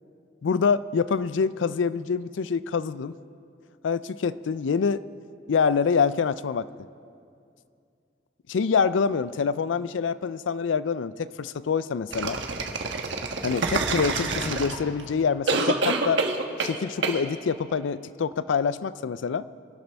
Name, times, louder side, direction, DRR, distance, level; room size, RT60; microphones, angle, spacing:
voice 1, 0.4-3.2 3.8-5.0 5.5-6.7 8.5-12.4 13.4-16.2 16.6-19.5, left 5 dB, 85° left, 16 dB, 0.4 m, -26 dB
sound 1, 12.1-15.0 15.5-16.8 17.0-17.2, right 3 dB, 80° right, 1.1 m, -27 dB
24.0 x 12.0 x 3.5 m, 2.4 s
head